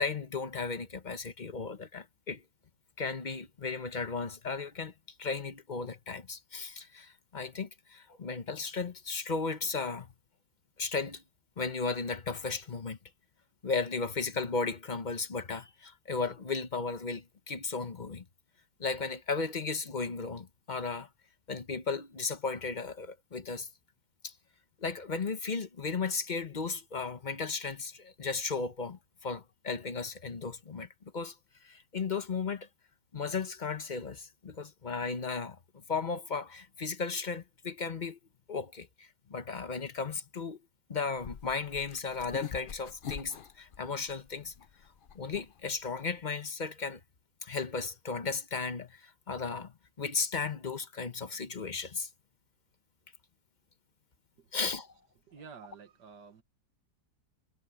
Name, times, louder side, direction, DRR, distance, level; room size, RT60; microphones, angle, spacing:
voice 1, 0.0-2.4 3.0-4.9 5.2-10.1 10.8-11.2 11.6-13.0 13.6-18.2 18.8-21.1 21.5-23.7 24.2-24.3 24.8-30.9 31.1-31.3 31.6-32.7 33.1-38.2 38.5-40.6 40.9-44.5 45.1-47.0 47.4-52.1 54.5-54.9, left 4 dB, 35° left, 1.0 m, -35 dB
sound 1, 41.1-46.3, left 8 dB, 50° left, 0.6 m, -44 dB
voice 2, 55.3-56.4, right 6 dB, 90° right, 2.1 m, -51 dB
omnidirectional pair, 1.8 m